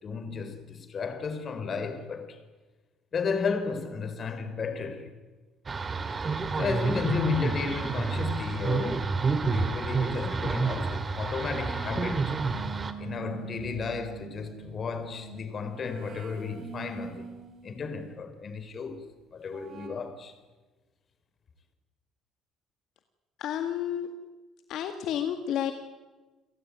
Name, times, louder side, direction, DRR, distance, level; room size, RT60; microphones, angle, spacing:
voice 1, 0.0-2.4 3.1-5.1 6.6-9.1 9.4-12.4 13.0-17.3 17.6-19.1 19.3-20.3, left 5 dB, 35° left, 3.8 m, -33 dB
sound 1, 5.7-12.9, right 4 dB, 25° right, 2.1 m, -29 dB
sound 2, 11.5-18.1 19.5-19.9, right 7 dB, 45° right, 5.0 m, -45 dB
voice 2, 23.4-24.1 24.7-25.7, left 10 dB, 65° left, 2.0 m, -30 dB
29.5 x 17.5 x 9.4 m
cardioid pair, 130°, 0 cm